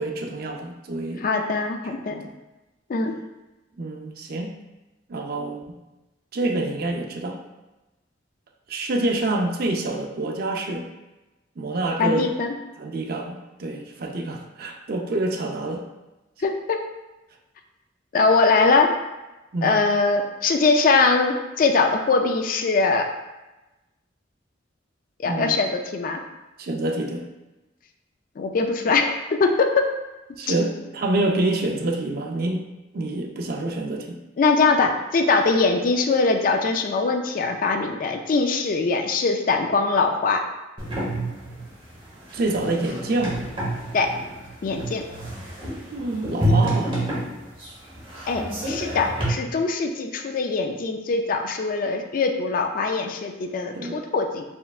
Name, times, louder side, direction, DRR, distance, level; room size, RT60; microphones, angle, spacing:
voice 1, 0.0-1.2 2.1-2.2 3.8-4.6 5.1-5.8 6.3-7.4 8.7-10.9 11.6-12.3 12.8-15.8 19.5-19.8 25.2-25.6 26.6-27.3 30.4-32.6 32.9-34.2 42.3-43.4 45.9-47.0 53.7-54.0, right 2 dB, 50° right, 2 dB, 0.4 m, -27 dB
voice 2, 1.2-2.3 2.9-3.1 12.0-12.5 16.4-16.8 18.1-18.9 19.6-23.1 25.2-26.2 28.4-29.7 34.4-40.4 43.9-44.1 44.6-45.0 48.3-54.4, left 4 dB, 45° left, 5 dB, 0.3 m, -22 dB
sound 1, 40.8-49.3, right 1 dB, 25° right, 1.1 m, -28 dB
4.4 x 3.3 x 2.4 m, 1.0 s
head